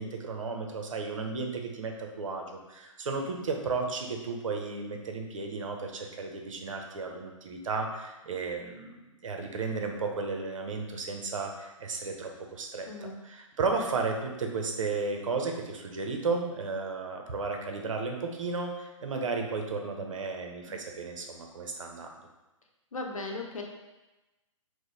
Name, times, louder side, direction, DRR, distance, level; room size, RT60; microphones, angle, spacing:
voice 1, 0.0-22.1, right 4 dB, 70° right, 3 dB, 0.8 m, -34 dB
voice 2, 12.9-13.2 22.9-23.6, left 3 dB, 85° left, 2 dB, 0.8 m, -37 dB
4.7 x 2.2 x 4.0 m, 1.1 s
hypercardioid pair, 135°, 17 cm